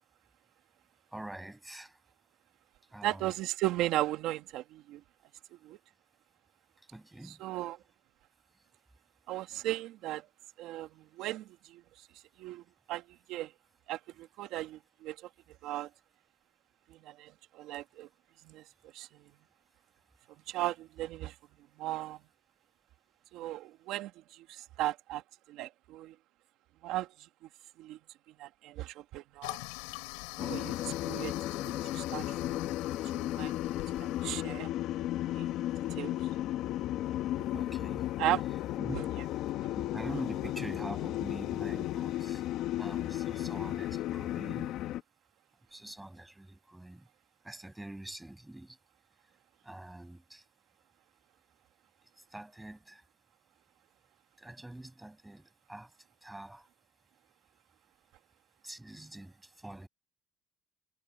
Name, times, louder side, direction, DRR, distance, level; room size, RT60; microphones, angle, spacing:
voice 1, 1.1-2.0 2.9-3.3 6.8-7.4 37.4-38.1 38.8-39.3 39.7-42.4 42.8-44.8 45.7-47.1 47.4-48.8 49.6-50.4 52.2-53.0 54.4-56.7 58.6-59.9, right 1 dB, 5° right, 6.8 m, -45 dB
voice 2, 3.0-5.0 5.6-5.8 7.4-7.8 9.3-10.3 10.6-10.9 11.2-11.8 12.4-12.6 12.9-13.0 13.3-13.5 13.9-15.3 15.6-15.9 17.0-18.1 18.5-18.6 18.9-19.1 20.5-21.3 21.8-22.2 23.3-25.2 25.5-26.1 26.8-27.1 27.8-28.0 28.4-29.6 30.4-31.3 31.9-32.6 33.1-33.5 33.9-34.7 35.3-35.5 35.9-36.3 38.2-38.4, right 15 dB, 70° right, 1.8 m, -36 dB
Toilet flush, 29.4-34.6, left 30 dB, 90° left, 5.0 m, -44 dB
sound 1, 30.4-45.0, left 14 dB, 65° left, 1.2 m, -34 dB
supercardioid pair, 100°, 0 cm